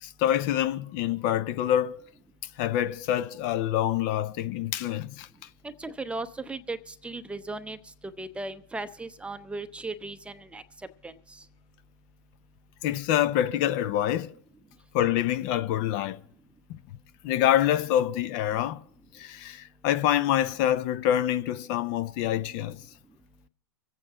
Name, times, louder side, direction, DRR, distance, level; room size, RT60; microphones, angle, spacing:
voice 1, 0.0-2.0 2.6-5.3 12.8-14.3 14.9-16.2 17.2-18.8 19.1-22.8, left 11 dB, 45° left, 0.6 m, -26 dB
voice 2, 5.6-10.6 11.0-11.4, right 2 dB, 10° right, 0.6 m, -37 dB
25.0 x 8.4 x 3.8 m
hypercardioid pair, 115°, 14 cm